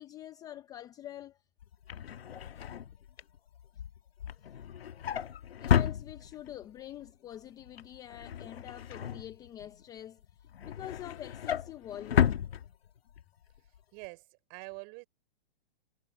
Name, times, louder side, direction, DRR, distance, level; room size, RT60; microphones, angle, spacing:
voice 1, 0.0-1.4 5.6-12.4, left 11 dB, 10° left, 0.6 m, -45 dB
Drawer open or close, 1.6-6.6 7.0-7.3 7.6-9.8 10.2-13.2 13.6-13.8 14.0-14.1, left 9 dB, 80° left, 1.4 m, -33 dB
voice 2, 13.6-15.1, right 33 dB, 35° right, 5.4 m, -46 dB
hypercardioid pair, 150°, 30 cm